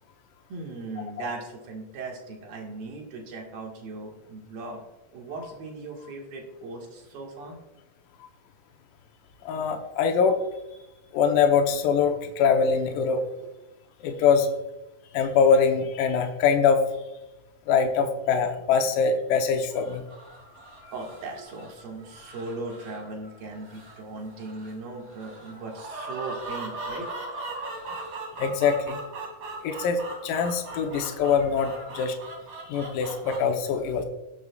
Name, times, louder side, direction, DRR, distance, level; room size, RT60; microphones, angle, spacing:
voice 1, 0.5-4.8 5.1-7.6 20.9-27.1, right 3 dB, 60° right, 0 dB, 3.2 m, -38 dB
voice 2, 9.4-10.4 11.1-13.2 14.0-14.5 15.1-16.9 17.7-20.0 28.4-29.0 29.6-32.2 32.6-34.0, left 6 dB, 85° left, 3 dB, 1.9 m, -23 dB
sound 1, 19.7-33.4, right 2 dB, 35° right, 2.3 m, -39 dB
18.5 x 8.2 x 2.4 m, 0.98 s
omnidirectional pair, 5.3 m